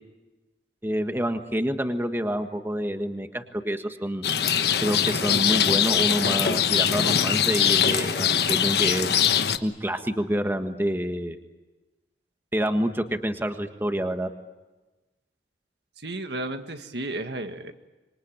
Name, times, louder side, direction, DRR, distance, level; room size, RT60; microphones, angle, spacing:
voice 1, 0.8-4.2 4.8-9.1 9.6-11.4 12.5-14.3, equal, 15° right, 6 dB, 1.5 m, -27 dB
Rain, 4.2-9.6, left 8 dB, 65° left, 1.2 m, -22 dB
voice 2, 16.0-17.7, right 2 dB, 75° right, 7 dB, 1.8 m, -33 dB
26.0 x 23.5 x 8.9 m, 1.1 s
head